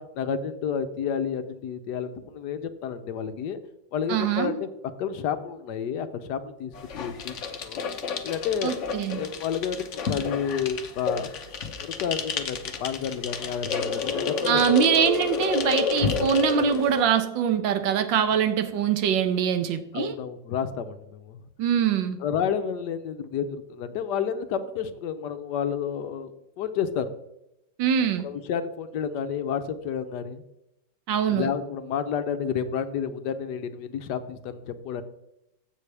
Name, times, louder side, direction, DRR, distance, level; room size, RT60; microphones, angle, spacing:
voice 1, 0.0-3.6 3.9-4.7 5.0-7.4 7.6-7.8 8.2-8.7 9.1-11.3 11.8-14.6 19.9-21.4 22.2-26.3 26.6-27.1 28.2-30.4 31.3-35.0, left 7 dB, 70° left, 10 dB, 1.3 m, -30 dB
voice 2, 4.1-4.6 8.6-9.2 14.5-20.1 21.6-22.2 27.8-28.3 31.1-31.5, right 8 dB, 85° right, 10 dB, 1.6 m, -23 dB
sound 1, 6.7-17.0, left 5 dB, 50° left, 1.0 m, -30 dB
15.0 x 5.6 x 3.4 m, 0.85 s
omnidirectional pair, 2.0 m